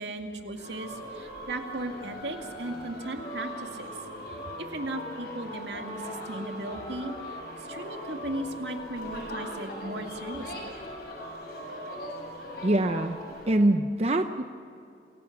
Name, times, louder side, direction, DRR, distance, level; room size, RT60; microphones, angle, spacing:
voice 1, 0.0-3.9 4.6-10.8, right 1 dB, 80° right, 4 dB, 2.2 m, -37 dB
sound 1, 0.5-13.6, equal, 60° left, 6.6 m, -39 dB
voice 2, 12.6-13.2 13.5-14.4, right 1 dB, 35° right, 7 dB, 0.7 m, -24 dB
26.5 x 16.5 x 7.2 m, 2.5 s
head